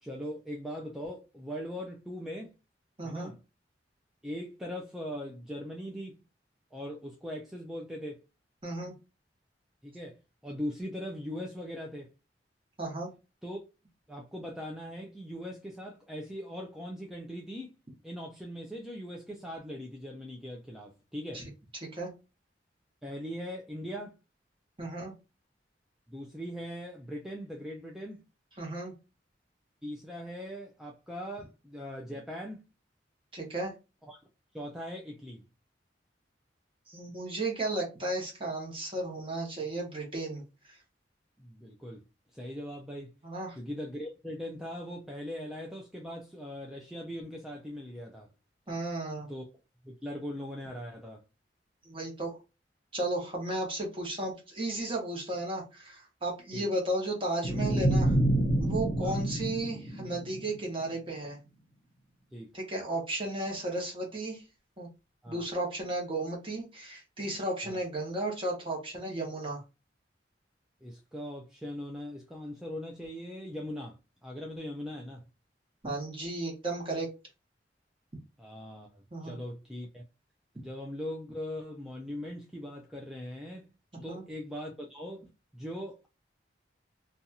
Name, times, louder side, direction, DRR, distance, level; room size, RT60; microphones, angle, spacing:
voice 1, 0.0-2.5 3.0-3.4 4.2-6.2 6.7-8.2 9.8-12.1 13.4-13.6 14.1-17.7 18.0-21.4 23.0-24.1 26.1-28.2 29.8-32.6 34.0-34.2 34.5-35.4 41.4-42.0 42.3-43.1 43.6-48.3 49.3-49.4 49.8-51.2 56.5-56.7 59.0-59.2 62.3-62.5 65.2-65.4 67.6-67.8 70.8-75.2 78.4-80.0 80.5-83.7 84.0-85.3 85.5-86.1, equal, ahead, 0.4 m, -40 dB
voice 2, 3.0-3.3 8.6-8.9 12.8-13.1 21.3-21.5 21.8-22.1 24.8-25.1 28.6-28.9 33.3-33.7 36.9-40.8 43.2-43.6 48.7-49.3 51.8-52.4 52.9-58.2 58.6-61.4 62.5-64.4 64.8-64.9 65.3-69.6 75.8-77.1 79.1-79.4 84.1-84.2, right 2 dB, 30° right, 1.1 m, -34 dB
sound 1, 57.4-60.7, right 1 dB, 40° left, 0.8 m, -28 dB
2.7 x 2.3 x 2.7 m
head